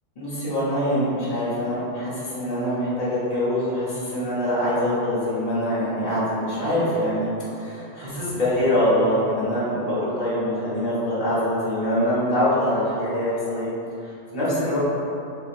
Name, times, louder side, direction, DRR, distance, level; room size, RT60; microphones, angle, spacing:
voice 1, 0.2-7.3 7.6-13.7 14.3-14.8, equal, 35° left, -10 dB, 1.1 m, -24 dB
4.3 x 3.1 x 2.5 m, 2.8 s
omnidirectional pair, 1.3 m